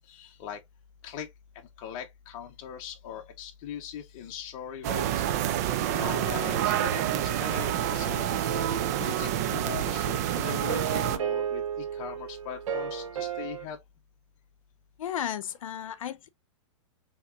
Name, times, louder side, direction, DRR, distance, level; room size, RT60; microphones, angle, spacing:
voice 1, 0.1-0.6 1.0-1.3 1.8-5.2 5.9-8.6 9.0-13.8, left 8 dB, 30° left, 1.1 m, -40 dB
sound 1, 4.8-11.2, right 11 dB, 30° right, 0.3 m, -28 dB
sound 2, 8.5-10.0 10.5-13.7, right 8 dB, 90° right, 0.9 m, -35 dB
voice 2, 15.0-16.3, left 10 dB, 85° left, 0.7 m, -34 dB
5.6 x 3.1 x 2.4 m
supercardioid pair, 165°, 17 cm